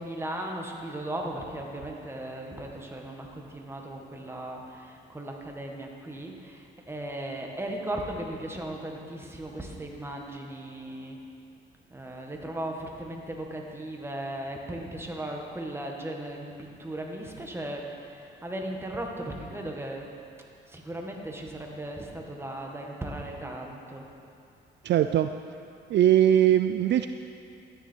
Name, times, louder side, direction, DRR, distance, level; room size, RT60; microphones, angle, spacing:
voice 1, 0.0-11.2 11.9-20.1 20.7-24.1, right 1 dB, 10° right, 0 dB, 1.8 m, -37 dB
voice 2, 24.8-25.3 25.9-27.1, right 11 dB, 60° right, 9 dB, 0.4 m, -21 dB
13.5 x 9.9 x 4.6 m, 2.6 s
cardioid pair, 90°, 20 cm